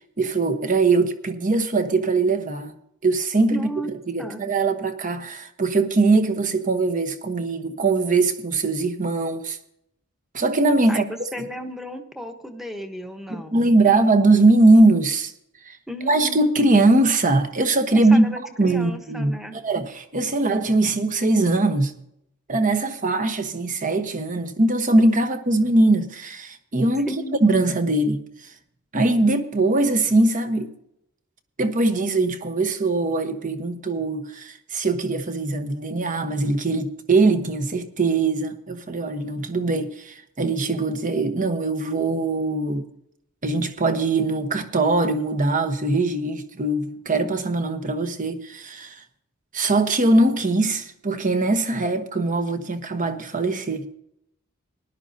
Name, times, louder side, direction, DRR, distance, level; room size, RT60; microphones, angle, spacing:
voice 1, 0.2-2.7 3.0-9.6 10.3-11.1 11.4-11.5 13.3-15.3 15.6-15.8 16.1-18.3 18.6-21.9 22.5-27.1 27.4-28.2 28.9-30.7 31.6-42.9 43.4-49.0 49.5-53.9, right 2 dB, 40° right, 1.1 m, -21 dB
voice 2, 3.5-3.9 4.2-4.4 10.9-13.7 15.9-16.4 18.1-19.5 27.1-27.4, equal, ahead, 1.1 m, -34 dB
19.0 x 11.5 x 2.8 m
head